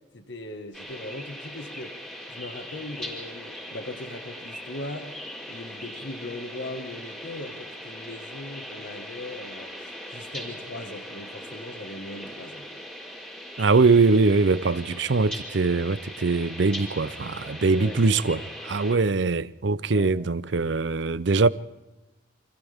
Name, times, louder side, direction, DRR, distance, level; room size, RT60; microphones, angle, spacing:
voice 1, 0.1-2.0 2.3-12.7 17.6-17.9 19.9-20.2, left 1 dB, 65° left, 1.8 m, -39 dB
sound 1, 0.7-19.0, equal, 5° left, 5.0 m, -40 dB
voice 2, 13.6-21.5, right 3 dB, 65° right, 0.6 m, -22 dB
29.0 x 25.5 x 3.6 m
head